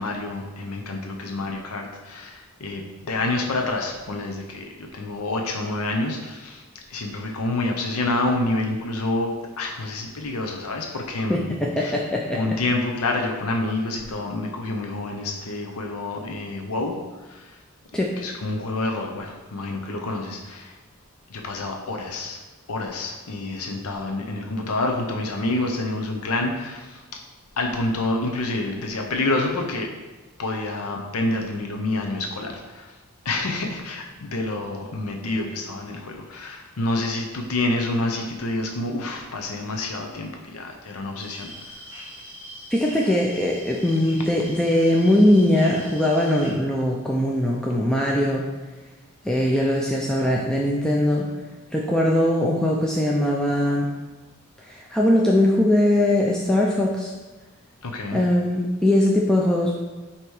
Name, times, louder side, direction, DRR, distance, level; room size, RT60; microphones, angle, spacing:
voice 1, 0.0-11.5 11.8-11.9 12.3-17.6 18.2-20.8 21.3-22.4 22.7-27.0 27.6-29.9 30.4-32.9 33.2-41.8 57.8-58.2, left 2 dB, 80° left, 2 dB, 0.7 m, -28 dB
voice 2, 11.3-12.4 17.9-18.1 42.7-48.4 49.2-51.2 51.7-53.9 54.7-57.1 58.1-59.7, left 1 dB, 5° left, -3 dB, 0.4 m, -21 dB
sound 1, 41.2-46.5, equal, 25° left, 1.9 m, -42 dB
7.9 x 2.9 x 4.7 m, 1.2 s
head